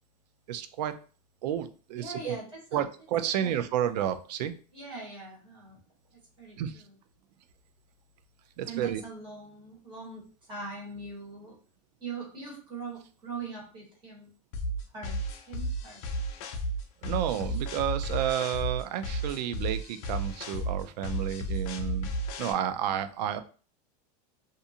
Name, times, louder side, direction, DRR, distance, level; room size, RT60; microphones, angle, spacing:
voice 1, 0.5-1.0 1.4-2.4 2.7-4.5 6.6-6.8 8.6-9.0 17.0-22.1 22.4-23.4, right 10 dB, 85° right, 10 dB, 0.4 m, -31 dB
voice 2, 2.0-2.8 3.4-3.6 4.7-5.8 6.1-6.9 8.6-11.6 12.0-14.3 14.9-15.2 15.5-16.0, right 4 dB, 25° right, -3 dB, 1.4 m, -41 dB
sound 1, 14.5-22.5, right 1 dB, 50° left, 0.5 m, -33 dB
2.5 x 2.5 x 2.7 m, 0.38 s
supercardioid pair, 155°, 21 cm